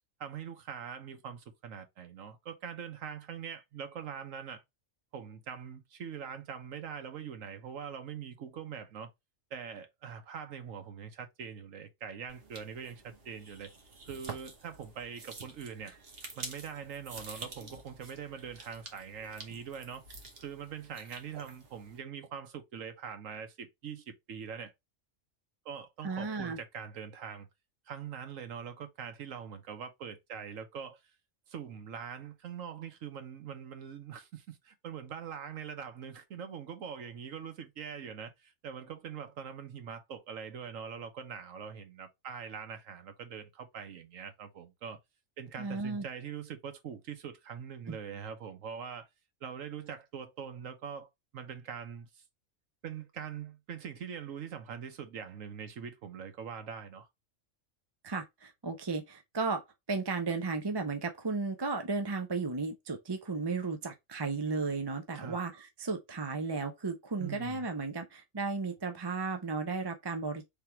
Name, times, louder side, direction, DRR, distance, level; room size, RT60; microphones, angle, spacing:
voice 1, 0.2-4.6 5.1-9.1 9.5-13.7 14.1-15.9 16.4-20.0 20.4-24.7 25.6-27.5 27.9-31.0 31.5-45.0 45.4-49.1 49.4-52.2 52.8-57.1 65.1-65.4 67.2-67.6, right 7 dB, 80° right, 1.3 m, -43 dB
sound 1, 12.3-22.0, right 4 dB, 50° right, 1.4 m, -48 dB
voice 2, 26.0-26.6 45.6-46.0 47.9-48.0 58.0-59.6 59.9-70.5, right 4 dB, 30° right, 0.5 m, -34 dB
3.6 x 3.4 x 4.3 m
omnidirectional pair, 1.3 m